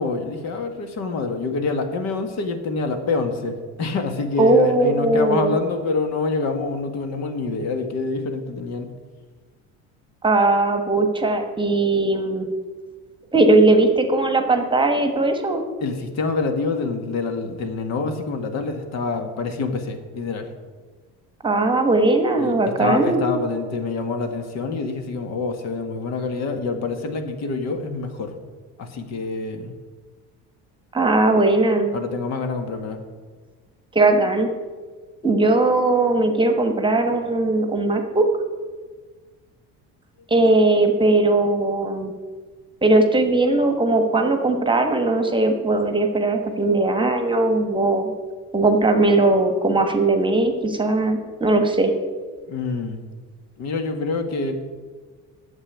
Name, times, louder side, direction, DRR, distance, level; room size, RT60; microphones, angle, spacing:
voice 1, 0.0-8.9 15.8-20.5 22.4-28.3 28.8-29.7 31.9-33.0 52.5-53.0 53.6-54.5, left 3 dB, 55° left, 6 dB, 1.7 m, -26 dB
voice 2, 4.4-5.5 10.2-12.5 13.3-15.6 21.4-23.2 30.9-31.9 33.9-34.5 35.2-38.3 40.3-42.1 42.8-48.1 48.5-51.9, right 2 dB, 15° right, 6 dB, 1.3 m, -19 dB
9.8 x 7.6 x 8.6 m, 1.4 s
cardioid pair, 125°, 31 cm